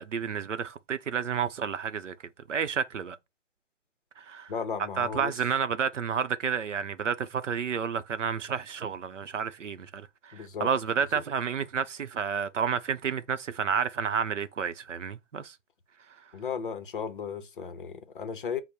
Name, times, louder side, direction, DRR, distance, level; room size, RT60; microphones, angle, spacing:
voice 1, 0.0-2.1 2.5-3.2 4.2-4.5 5.0-15.5, right 7 dB, 75° right, 0.6 m, -30 dB
voice 2, 4.5-5.3 10.3-10.7 11.1-11.2 16.3-18.6, left 6 dB, 45° left, 0.7 m, -35 dB
5.2 x 2.1 x 4.4 m
figure-of-eight pair, 150°, 37 cm